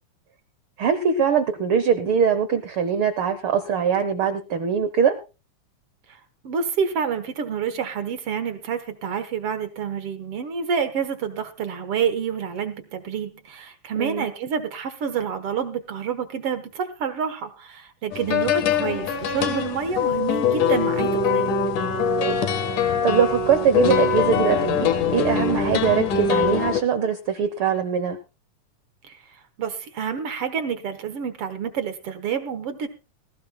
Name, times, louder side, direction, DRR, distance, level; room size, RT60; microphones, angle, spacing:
voice 1, 0.8-5.1 14.0-14.3 22.2-22.4 22.7-28.2, right 7 dB, 90° right, 11 dB, 1.2 m, -22 dB
voice 2, 6.4-21.5 29.0-29.2 29.6-32.9, right 7 dB, 55° right, 10 dB, 1.8 m, -28 dB
sound 1, 18.1-26.8, left 6 dB, 70° left, 2.9 m, -23 dB
19.5 x 15.5 x 2.2 m, 0.31 s
omnidirectional pair, 3.8 m